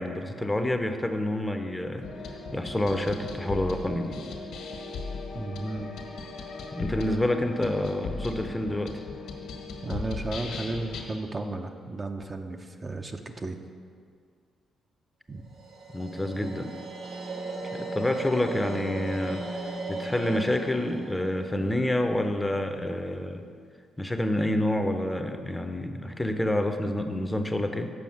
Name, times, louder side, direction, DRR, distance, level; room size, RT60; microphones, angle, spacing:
voice 1, 0.0-2.1 2.5-4.2 6.7-8.9 15.9-16.7 17.7-23.4 24.0-27.9, left 1 dB, 10° left, 6 dB, 0.6 m, -28 dB
sound 1, 2.0-11.0, left 4 dB, 80° left, 1.3 m, -37 dB
voice 2, 5.3-5.9 9.8-13.6 15.3-15.4, right 2 dB, 30° right, 5 dB, 0.6 m, -34 dB
sound 2, 15.5-22.7, right 2 dB, 80° right, 1.1 m, -37 dB
7.0 x 5.5 x 6.1 m, 2.2 s
supercardioid pair, 65°, 0 cm